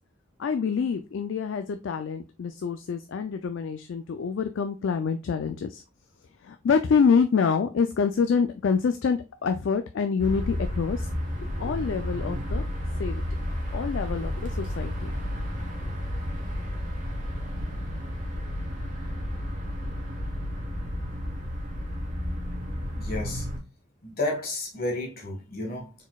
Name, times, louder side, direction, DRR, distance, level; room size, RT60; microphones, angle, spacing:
voice 1, 0.4-5.8 6.4-11.1 11.6-12.6 13.0-13.2 13.7-15.1, left 6 dB, 60° left, 0.3 m, -26 dB
sound 1, 10.2-23.6, left 1 dB, 40° right, 1.1 m, -32 dB
voice 2, 22.9-23.5 24.0-25.9, left 2 dB, 45° left, 1.6 m, -31 dB
4.2 x 4.1 x 2.3 m
head